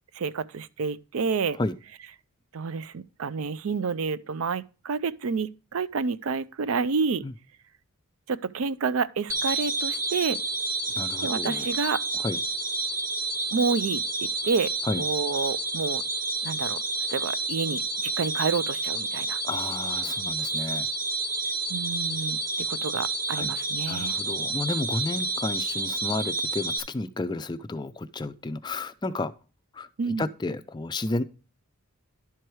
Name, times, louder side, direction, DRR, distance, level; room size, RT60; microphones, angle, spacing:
voice 1, 0.1-1.6 2.5-7.2 8.3-10.4 11.2-12.0 13.5-14.0 14.4-14.7 15.0-16.0 16.4-16.8 17.1-19.4 21.7-22.4 22.7-24.1 30.0-30.3, right 5 dB, 70° right, 0.5 m, -29 dB
sound 1, 9.3-26.8, right 2 dB, 15° right, 0.9 m, -29 dB
voice 2, 10.9-11.7 12.1-12.4 14.8-15.0 19.4-20.9 23.3-23.5 23.9-29.3 29.7-31.2, left 2 dB, 20° left, 0.3 m, -32 dB
11.0 x 4.6 x 4.6 m
head